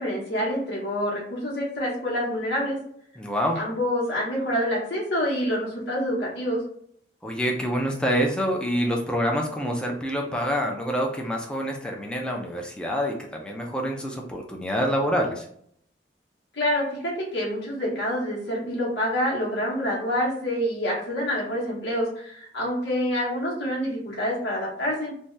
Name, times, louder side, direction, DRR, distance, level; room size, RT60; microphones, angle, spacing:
voice 1, 0.0-2.8 3.6-6.6 16.5-25.1, equal, 90° left, -5 dB, 1.0 m, -27 dB
voice 2, 3.2-3.6 7.2-15.5, equal, 5° left, 0 dB, 0.4 m, -26 dB
2.7 x 2.2 x 3.1 m, 0.65 s
head